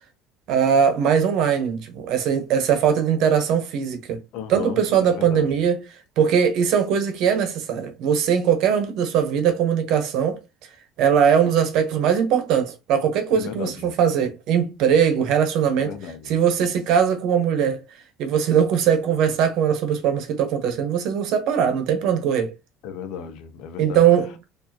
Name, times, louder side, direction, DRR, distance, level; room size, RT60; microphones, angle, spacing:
voice 1, 0.5-4.2 4.5-5.8 6.2-10.4 11.0-15.9 16.3-17.8 18.2-22.5 23.8-24.5, right 8 dB, 65° right, 1.0 m, -20 dB
voice 2, 4.3-5.5 13.3-13.9 15.8-16.4 22.8-24.1, left 8 dB, 70° left, 0.7 m, -34 dB
4.6 x 2.7 x 2.9 m
cardioid pair, 135°, 0 cm